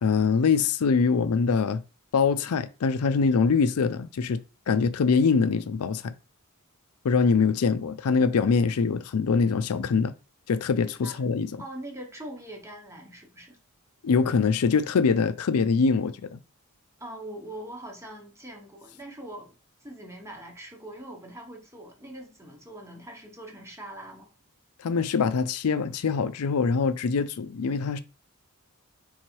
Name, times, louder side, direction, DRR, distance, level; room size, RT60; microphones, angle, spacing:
voice 1, 0.0-1.8 2.1-4.4 4.7-6.1 7.0-10.1 10.5-11.6 14.0-16.4 24.8-28.0, left 5 dB, 80° left, 0.4 m, -23 dB
voice 2, 11.6-13.6 17.0-19.5 19.8-24.3, right 1 dB, 10° right, 1.0 m, -42 dB
3.9 x 3.0 x 4.5 m
head